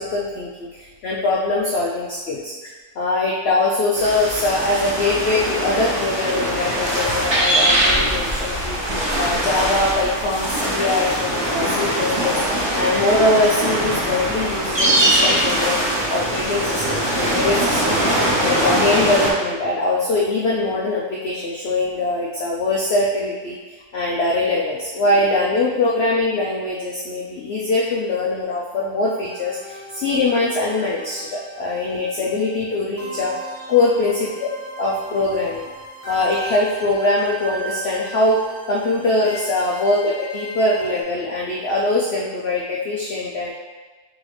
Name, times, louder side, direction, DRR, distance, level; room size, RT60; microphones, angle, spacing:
voice 1, 0.0-2.5 3.0-12.4 12.8-18.0 18.4-33.3 33.7-34.1 34.8-35.7 36.1-38.4 38.7-43.5, left 2 dB, 80° left, -3 dB, 0.5 m, -22 dB
sound 1, 4.0-19.3, right 1 dB, 30° right, 0.5 m, -21 dB
sound 2, 29.2-41.0, right 1 dB, 55° left, 1.3 m, -37 dB
3.9 x 3.9 x 3.2 m, 1.3 s
omnidirectional pair, 1.7 m